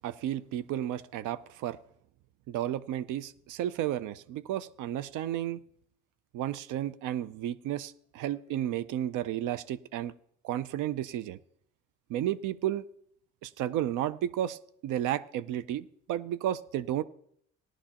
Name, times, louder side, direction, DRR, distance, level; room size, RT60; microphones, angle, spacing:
voice 1, 0.0-1.8 2.5-5.6 6.3-10.1 10.4-11.4 12.1-12.8 13.4-17.0, right 12 dB, 85° right, 15 dB, 0.5 m, -32 dB
16.0 x 11.0 x 2.9 m, 0.68 s
cardioid pair, 90°, 30 cm